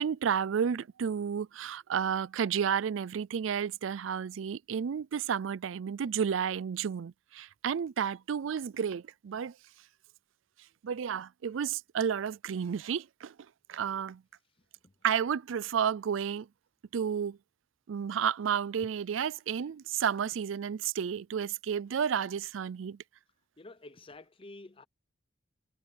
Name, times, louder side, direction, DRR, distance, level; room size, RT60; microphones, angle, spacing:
voice 1, 0.0-9.5 10.8-13.3 13.7-14.2 15.0-16.5 16.9-17.4 17.9-23.0, right 7 dB, 80° right, 0.4 m, -31 dB
voice 2, 23.6-24.8, left 2 dB, 30° left, 0.8 m, -50 dB
head